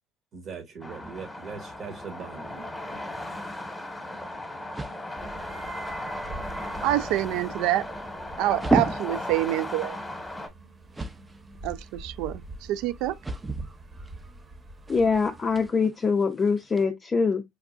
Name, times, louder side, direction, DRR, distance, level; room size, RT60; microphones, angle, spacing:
voice 1, 0.3-2.7, right 5 dB, 55° right, 1.2 m, -40 dB
sound 1, 0.8-10.5, left 1 dB, 10° left, 1.2 m, -36 dB
sound 2, 3.4-16.8, right 2 dB, 15° right, 0.6 m, -36 dB
sound 3, 5.2-15.7, right 2 dB, 30° right, 1.1 m, -43 dB
voice 2, 6.8-7.9 8.4-10.0 11.6-13.2, right 14 dB, 75° right, 0.3 m, -26 dB
voice 3, 14.9-17.4, left 5 dB, 30° left, 0.4 m, -24 dB
4.6 x 2.3 x 2.4 m
supercardioid pair, 85°, 0 cm